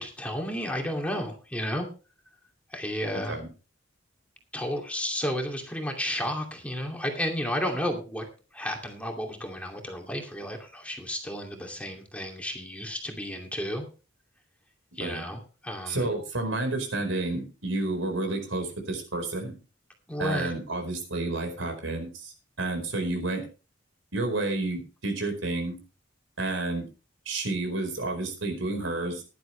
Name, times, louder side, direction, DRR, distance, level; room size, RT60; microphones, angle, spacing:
voice 1, 0.0-1.9 2.7-3.4 4.5-8.3 8.5-13.9 15.0-16.1 20.1-20.5, equal, 5° left, 2 dB, 2.5 m, -32 dB
voice 2, 15.9-19.6 20.2-23.4 24.1-25.8 26.4-26.8 27.3-29.2, right 2 dB, 80° right, 5 dB, 4.7 m, -30 dB
15.5 x 11.0 x 3.3 m, 0.33 s
head